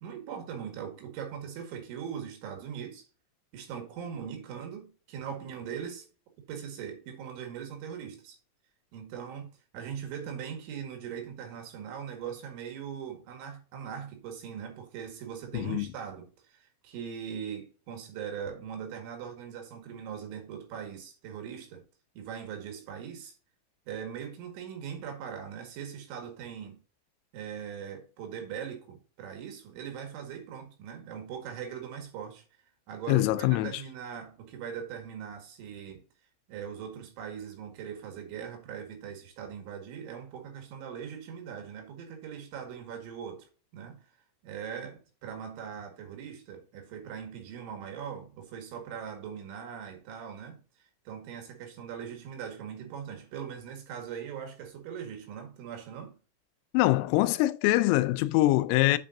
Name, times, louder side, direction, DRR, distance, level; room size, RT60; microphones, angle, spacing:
voice 1, 0.0-3.1 3.5-6.1 6.5-8.4 8.9-21.8 22.2-23.3 23.9-26.8 27.3-32.4 32.9-36.0 36.5-43.5 43.7-44.0 44.4-50.6 51.1-56.1, right 8 dB, 75° right, 4.1 m, -40 dB
voice 2, 15.5-15.9 33.1-33.8 56.7-59.0, left 17 dB, 90° left, 3.2 m, -24 dB
9.1 x 5.2 x 2.7 m
omnidirectional pair, 5.6 m